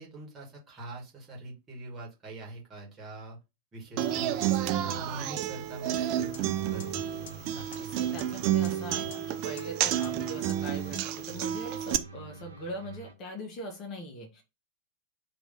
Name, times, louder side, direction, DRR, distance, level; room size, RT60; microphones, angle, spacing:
voice 1, 0.0-3.4 3.7-7.0, right 2 dB, 20° right, -2 dB, 1.9 m, -44 dB
Human voice / Acoustic guitar, 4.0-12.0, right 11 dB, 40° right, 0.4 m, -30 dB
sound 1, 5.6-13.1, right 4 dB, 75° right, 0.7 m, -49 dB
sound 2, 6.3-6.4 6.8-6.9 7.3-7.4 7.7-7.8 8.2-8.3 8.6-8.7 9.1-9.2 9.6-9.7 10.0-10.1 10.5-10.6 10.9-11.0 11.4-11.5, left 7 dB, 55° left, 0.6 m, -45 dB
voice 2, 7.4-14.4, equal, 35° left, 2 dB, 1.0 m, -41 dB
3.1 x 3.0 x 4.1 m, 0.25 s
figure-of-eight pair, 90°, 0 cm